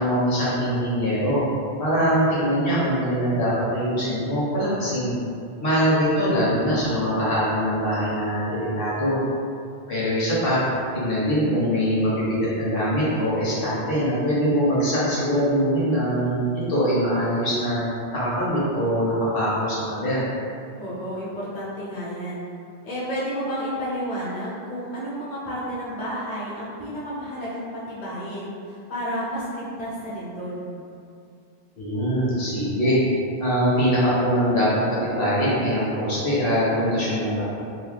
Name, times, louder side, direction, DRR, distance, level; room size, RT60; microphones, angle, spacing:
voice 1, 0.0-1.4 1.8-5.1 5.6-9.2 9.9-10.6 10.9-17.8 18.1-20.2 31.8-33.0 33.4-34.7 35.0-37.4, equal, 60° left, -8 dB, 1.1 m, -23 dB
voice 2, 20.8-22.5 22.8-30.7, equal, 45° left, -8 dB, 0.6 m, -31 dB
2.8 x 2.1 x 3.2 m, 2.4 s
omnidirectional pair, 1.1 m